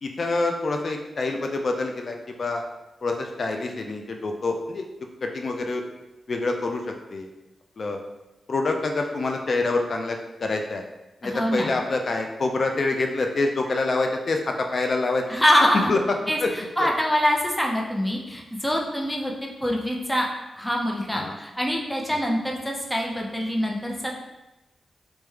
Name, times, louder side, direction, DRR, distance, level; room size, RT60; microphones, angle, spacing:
voice 1, 0.0-2.6 3.0-4.8 5.2-5.8 6.3-6.8 7.1-7.3 7.8-8.0 8.5-10.8 11.2-15.2 15.7-16.0 16.4-16.5 16.8-16.9 21.1-21.3 22.1-22.2, left 3 dB, 60° left, 3 dB, 0.3 m, -26 dB
voice 2, 11.2-11.7 15.3-15.9 16.3-20.3 20.6-24.1, equal, 5° left, -1 dB, 0.5 m, -24 dB
3.3 x 2.1 x 3.1 m, 1.0 s
cardioid pair, 55°, 0 cm